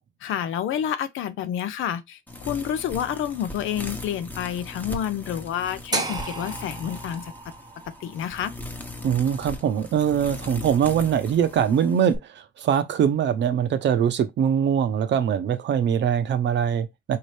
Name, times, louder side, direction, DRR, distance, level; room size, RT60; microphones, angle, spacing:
voice 1, 0.2-7.5 7.9-8.5, left 9 dB, 80° left, 0.6 m, -29 dB
sound 1, 2.3-12.2, left 2 dB, 10° left, 0.9 m, -39 dB
sound 2, 5.9-10.0, right 3 dB, 20° right, 0.8 m, -34 dB
voice 2, 9.0-17.2, right 8 dB, 65° right, 0.7 m, -22 dB
4.2 x 2.8 x 3.2 m
cardioid pair, 90°, 20 cm